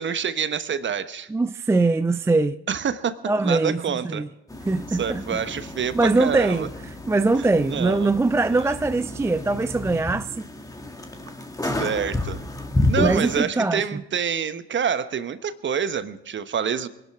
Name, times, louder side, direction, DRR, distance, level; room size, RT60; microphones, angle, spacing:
voice 1, 0.0-1.3 2.7-4.2 4.9-6.7 7.6-8.1 8.5-8.7 11.6-12.4 12.9-16.9, right 7 dB, 35° right, 1.1 m, -27 dB
voice 2, 1.3-2.6 3.3-4.3 4.7-5.2 5.9-6.7 7.1-10.5 13.0-13.9, right 3 dB, 10° right, 0.4 m, -22 dB
sound 1, 4.5-13.4, left 2 dB, 10° left, 1.7 m, -30 dB
25.0 x 11.5 x 3.7 m
hypercardioid pair, 60°, 31 cm